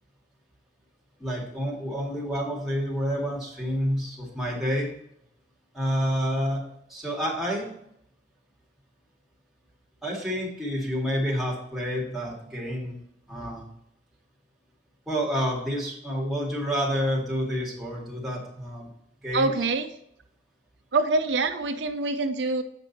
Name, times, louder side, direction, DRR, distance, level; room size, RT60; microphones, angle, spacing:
voice 1, 1.2-4.9 5.7-6.6 6.9-7.7 10.0-13.0 13.3-13.7 15.1-18.9 19.2-19.6, equal, ahead, -4 dB, 2.2 m, -29 dB
voice 2, 19.3-19.9 20.9-22.6, right 3 dB, 80° right, 7 dB, 0.6 m, -25 dB
8.1 x 5.3 x 4.2 m, 0.74 s
head